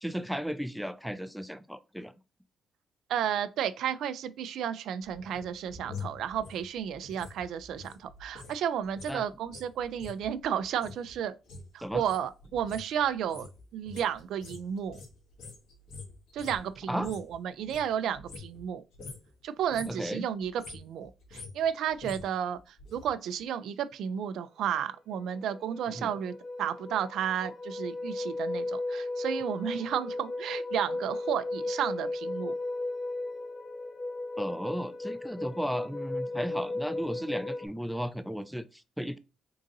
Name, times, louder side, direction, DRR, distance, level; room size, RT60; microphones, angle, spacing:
voice 1, 0.0-2.1 9.1-9.2 11.8-12.0 16.9-17.1 19.9-20.2 26.0-26.1 34.4-39.2, equal, ahead, 0.4 m, -35 dB
voice 2, 3.1-11.3 11.7-15.0 16.3-18.8 19.4-32.5, right 9 dB, 80° right, 0.4 m, -32 dB
sound 1, 5.0-8.6 8.8-17.3 17.6-18.7 18.9-19.3 19.6-20.1 20.4-23.1 23.4-23.5, left 4 dB, 85° left, 1.5 m, -46 dB
sound 2, 24.8-24.9 25.2-37.7, left 2 dB, 40° left, 1.2 m, -35 dB
3.8 x 2.6 x 3.8 m
cardioid pair, 90°, 0 cm